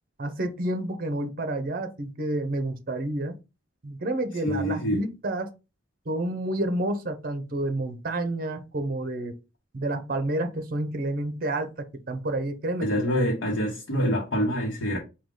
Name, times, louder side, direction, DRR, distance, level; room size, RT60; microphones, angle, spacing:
voice 1, 0.2-3.4 3.8-5.5 6.1-9.4 9.7-13.1, right 1 dB, 50° right, 0.7 m, -29 dB
voice 2, 4.4-5.0 12.8-15.0, equal, 85° left, 1.0 m, -26 dB
4.7 x 2.3 x 3.7 m
head